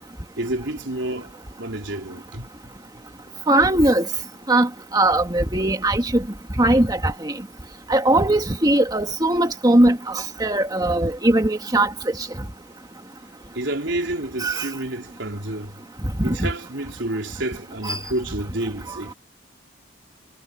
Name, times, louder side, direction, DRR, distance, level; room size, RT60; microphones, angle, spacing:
voice 1, 0.4-2.5 13.6-15.7 16.2-19.1, right 1 dB, 75° right, 3.9 m, -29 dB
voice 2, 3.5-4.1 4.5-6.2 6.6-7.3 7.9-11.9 14.4-14.7 16.3-16.5 17.8-18.0, right 1 dB, 20° right, 2.0 m, -19 dB
head